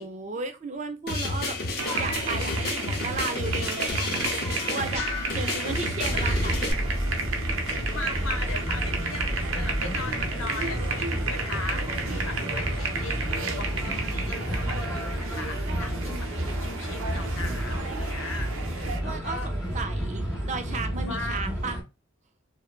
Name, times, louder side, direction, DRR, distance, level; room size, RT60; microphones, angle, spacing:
voice 1, 0.0-1.6 2.0-5.0 5.3-6.7 16.0-16.9 18.8-21.8, right 4 dB, 35° right, 0.3 m, -35 dB
sound 1, 1.1-6.7, left 2 dB, 45° left, 0.7 m, -30 dB
sound 2, 1.8-19.0, right 4 dB, 85° right, 0.6 m, -33 dB
sound 3, 6.0-21.8, equal, 5° right, 0.8 m, -31 dB
voice 2, 6.1-6.6 7.7-19.5 21.0-21.5, left 3 dB, 80° left, 0.7 m, -39 dB
3.1 x 2.0 x 2.4 m
head